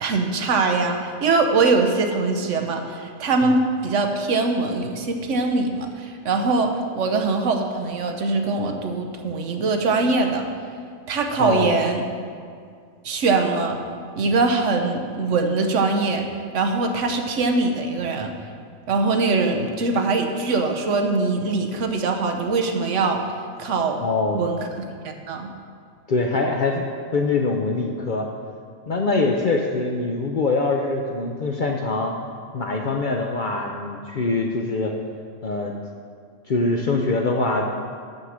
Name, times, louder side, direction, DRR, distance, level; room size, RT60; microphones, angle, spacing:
voice 1, 0.0-10.4 11.1-12.0 13.0-13.8 14.2-16.3 16.5-18.3 18.9-23.2 23.6-24.0 24.3-24.6 25.0-25.5, right 3 dB, 65° right, 4 dB, 1.1 m, -22 dB
voice 2, 11.4-11.7 24.0-24.4 26.1-26.8 27.1-28.3 28.9-32.1 32.5-34.9 35.4-35.8 36.5-37.7, left 3 dB, 55° left, 1 dB, 0.6 m, -23 dB
6.7 x 6.3 x 7.2 m, 2.2 s
omnidirectional pair, 1.4 m